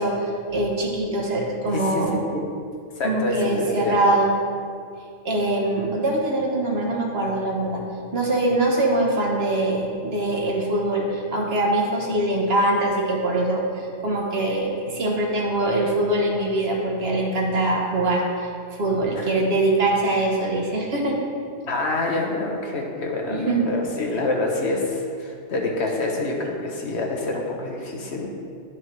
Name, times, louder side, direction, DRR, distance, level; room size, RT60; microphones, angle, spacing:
voice 1, 0.0-2.3 3.0-4.3 5.2-7.8 8.1-21.2 23.3-23.7, right 2 dB, 55° right, -1 dB, 1.2 m, -23 dB
voice 2, 1.7-2.4 3.0-4.0 19.1-19.4 21.7-28.3, left 2 dB, 60° left, 0 dB, 1.1 m, -26 dB
10.5 x 5.8 x 3.2 m, 2.3 s
omnidirectional pair, 1.3 m